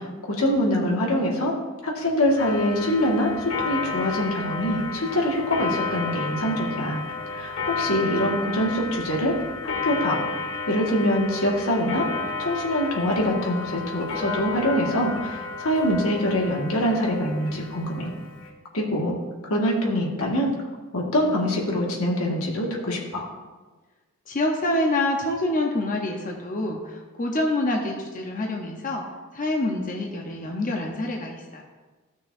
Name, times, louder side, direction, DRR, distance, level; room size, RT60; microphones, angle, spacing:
voice 1, 0.0-1.6 1.8-7.0 7.3-9.4 9.6-12.1 12.4-18.1 18.7-19.1 19.5-20.5 20.9-23.3, equal, 85° left, -1 dB, 1.8 m, -24 dB
Clock, 2.4-18.5, left 4 dB, 70° left, 1.7 m, -32 dB
voice 2, 24.3-29.0 29.3-31.6, left 1 dB, 40° left, 0 dB, 0.9 m, -26 dB
15.5 x 6.2 x 2.7 m, 1.3 s
head